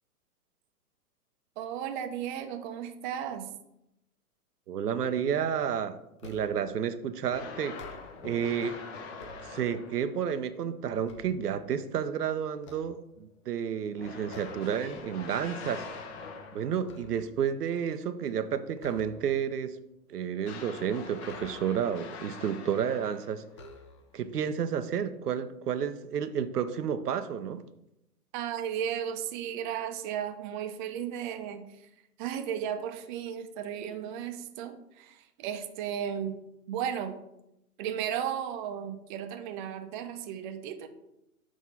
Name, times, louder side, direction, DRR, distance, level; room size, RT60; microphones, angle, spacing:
voice 1, 1.6-3.5 28.3-31.8 32.2-36.4 36.7-37.2 37.8-40.9, right 9 dB, 35° right, 7 dB, 0.6 m, -35 dB
voice 2, 4.7-6.0 6.2-7.8 8.2-8.8 9.4-15.9 16.5-19.8 20.1-23.4 24.1-27.6, right 8 dB, 85° right, 11 dB, 0.7 m, -31 dB
sound 1, 6.2-6.8 7.6-8.4 8.9-10.0 10.5-12.0 12.6-13.6 14.3-14.8 15.2-15.4 15.8-17.5 18.7-19.6 21.2-22.0 22.8-22.9 23.5-24.3, left 2 dB, 25° left, 0.3 m, -51 dB
sound 2, 7.3-10.2 14.0-16.9 20.4-23.5, left 5 dB, 45° left, 1.0 m, -44 dB
6.2 x 3.6 x 5.5 m, 0.86 s
hypercardioid pair, 115°, 46 cm